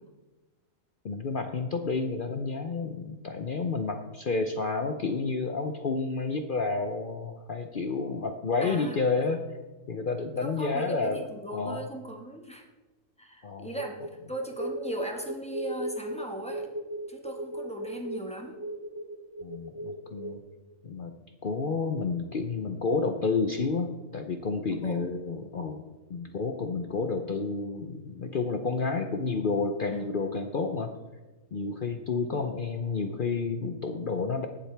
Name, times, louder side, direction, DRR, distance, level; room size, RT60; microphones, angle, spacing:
voice 1, 1.0-9.4 9.9-11.2 11.5-11.8 13.4-13.7 19.4-20.4 20.8-21.1 21.4-25.8 26.1-30.9 31.5-34.5, left 4 dB, 50° left, 6 dB, 0.7 m, -30 dB
voice 2, 8.6-9.3 10.4-12.7 13.2-16.7 17.1-18.6 24.7-25.0 29.9-30.1 32.3-32.5, right 1 dB, 5° left, 1 dB, 1.4 m, -38 dB
sound 1, 13.7-20.4, right 1 dB, 20° right, 0.8 m, -38 dB
19.0 x 7.5 x 3.4 m, 1.2 s
omnidirectional pair, 1.4 m